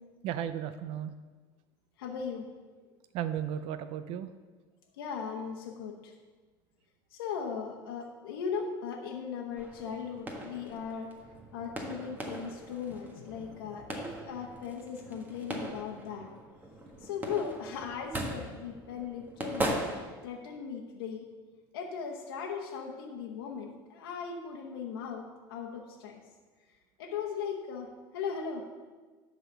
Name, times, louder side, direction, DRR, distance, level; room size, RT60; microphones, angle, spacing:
voice 1, 0.2-1.1 3.1-4.3, right 10 dB, 55° right, 10 dB, 0.5 m, -34 dB
voice 2, 2.0-2.5 5.0-6.1 7.1-11.1 11.5-16.3 17.0-19.7 20.2-21.2 21.7-26.2 27.0-28.6, left 6 dB, 90° left, 1 dB, 1.0 m, -38 dB
sound 1, 9.6-20.0, right 1 dB, 15° right, 1.5 m, -39 dB
11.0 x 4.1 x 6.8 m, 1.4 s
supercardioid pair, 105°, 12 cm